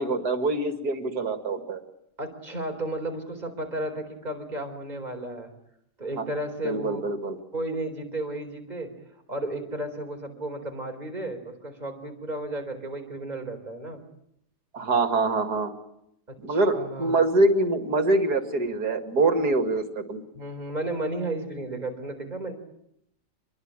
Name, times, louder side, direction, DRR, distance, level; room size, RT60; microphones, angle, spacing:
voice 1, 0.0-1.8 6.2-6.3 6.6-7.4 14.7-15.7 16.4-20.2, right 2 dB, 65° right, 8 dB, 2.9 m, -24 dB
voice 2, 2.2-5.5 6.0-7.0 7.5-9.0 9.3-14.0 16.3-17.1 20.3-22.5, right 2 dB, 25° right, 4 dB, 4.5 m, -33 dB
26.0 x 22.0 x 9.0 m, 0.77 s
omnidirectional pair, 1.8 m